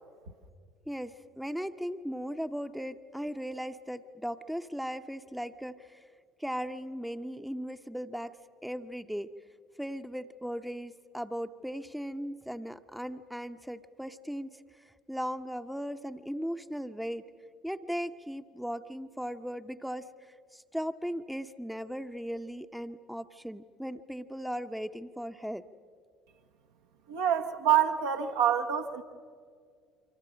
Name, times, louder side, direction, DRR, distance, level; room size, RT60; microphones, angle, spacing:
voice 1, 0.9-6.0 6.4-8.4 8.6-9.3 9.8-17.3 17.6-25.7, equal, ahead, 8 dB, 0.8 m, -37 dB
voice 2, 27.1-29.0, right 9 dB, 70° right, 2 dB, 1.0 m, -26 dB
28.0 x 25.0 x 6.3 m, 2.1 s
figure-of-eight pair, 55°, 0 cm